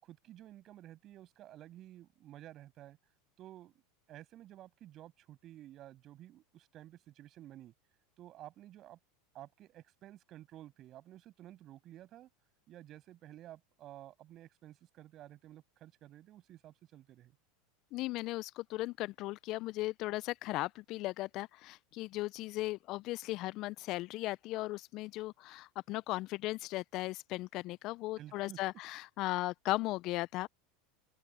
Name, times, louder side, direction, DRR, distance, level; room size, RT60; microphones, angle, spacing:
voice 1, 0.0-3.0 3.4-3.7 4.1-7.7 8.2-9.0 9.3-12.3 12.7-17.4 28.2-28.6, right 13 dB, 45° right, 7.7 m, -53 dB
voice 2, 17.9-30.5, left 18 dB, 50° left, 0.7 m, -37 dB
open air
hypercardioid pair, 90°, 0 cm